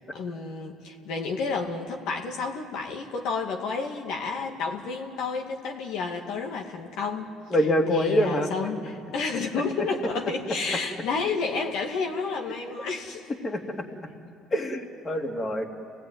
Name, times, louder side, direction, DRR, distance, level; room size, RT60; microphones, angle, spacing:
voice 1, 0.1-7.3 7.9-8.8 9.1-13.3, left 4 dB, 70° left, 2 dB, 2.1 m, -30 dB
voice 2, 7.5-8.9 9.8-9.9 12.5-12.6 13.4-13.9 14.5-15.7, equal, 30° left, 3 dB, 2.6 m, -26 dB
29.0 x 18.0 x 9.4 m, 2.6 s
supercardioid pair, 80°, 0 cm